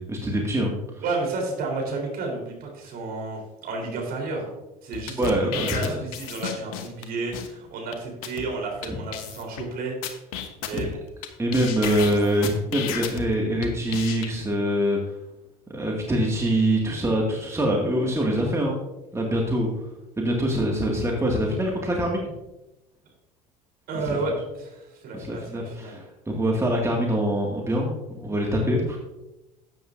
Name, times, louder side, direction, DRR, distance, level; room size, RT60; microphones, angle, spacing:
voice 1, 0.0-1.0 5.2-6.0 8.9-9.0 10.7-10.8 11.4-15.0 15.7-18.8 19.1-19.7 20.2-22.3 24.1-24.2 25.1-29.0, equal, 15° right, -1 dB, 2.1 m, -24 dB
voice 2, 1.0-4.5 4.8-10.0 10.6-11.0 23.9-26.0, right 3 dB, 55° right, 0 dB, 3.9 m, -31 dB
sound 1, 4.9-7.0 7.3-7.5 7.9-8.0 8.2-8.4 8.8-8.9 9.1-9.6 10.0-11.3 11.5-13.2 13.6-14.3, left 9 dB, 70° left, 1.2 m, -32 dB
13.0 x 9.2 x 2.7 m, 0.95 s
hypercardioid pair, 70°, 19 cm